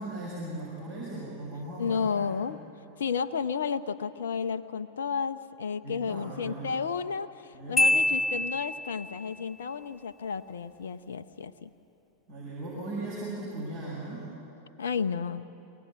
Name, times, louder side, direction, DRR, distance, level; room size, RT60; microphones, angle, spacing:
voice 1, 0.0-2.4 5.8-6.7 7.5-8.0 12.3-14.3, right 2 dB, 55° right, -7 dB, 6.4 m, -38 dB
voice 2, 1.8-2.6 3.0-11.7 14.8-15.5, left 6 dB, 65° left, 12 dB, 0.7 m, -32 dB
Marimba xylophone, 7.8-9.2, left 1 dB, 10° left, 0.4 m, -25 dB
24.0 x 18.0 x 8.7 m, 3.0 s
figure-of-eight pair, 90°, 0 cm